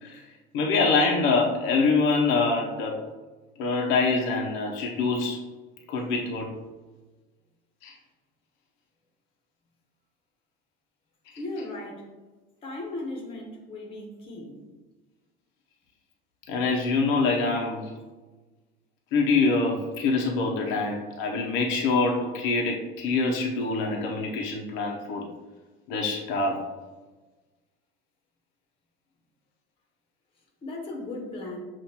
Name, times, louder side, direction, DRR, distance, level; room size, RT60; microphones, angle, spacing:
voice 1, 0.5-3.0 3.6-5.4 5.9-6.5 7.8-7.9 16.5-17.8 19.1-25.2 25.9-26.7, left 3 dB, 75° left, 0 dB, 0.7 m, -25 dB
voice 2, 11.4-12.1 12.6-14.5 30.6-31.6, left 2 dB, 25° left, -1 dB, 1.1 m, -36 dB
7.1 x 2.5 x 2.9 m, 1.2 s
cardioid pair, 145°, 21 cm